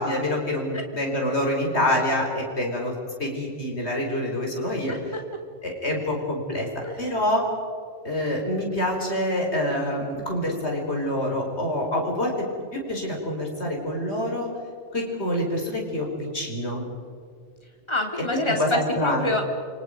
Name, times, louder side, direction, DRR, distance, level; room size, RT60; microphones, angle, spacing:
voice 1, 0.0-2.9 3.2-4.9 5.6-6.7 7.0-7.4 8.0-12.3 12.7-14.5 14.9-16.9 18.6-19.3, left 1 dB, 70° left, 0 dB, 5.2 m, -26 dB
voice 2, 4.9-5.2 6.8-7.0 17.9-19.4, left 2 dB, 25° left, 2 dB, 3.2 m, -27 dB
29.0 x 25.5 x 5.3 m, 2.1 s
omnidirectional pair, 1.2 m